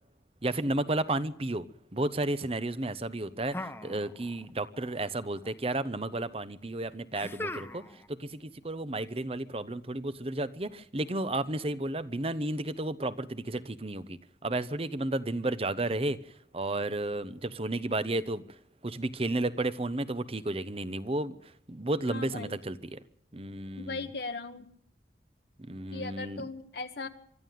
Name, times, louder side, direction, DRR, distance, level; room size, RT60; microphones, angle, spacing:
voice 1, 0.4-1.6 1.9-7.8 8.1-16.2 16.5-18.6 18.8-23.0 23.3-24.1 25.6-26.5, right 2 dB, 35° right, 0.9 m, -32 dB
sound 1, 3.5-4.5 4.7-5.5 7.1-8.1, left 1 dB, 15° left, 0.9 m, -40 dB
voice 2, 22.1-22.6 23.8-24.7 25.9-27.1, left 3 dB, 65° left, 1.3 m, -38 dB
24.0 x 13.0 x 9.2 m
head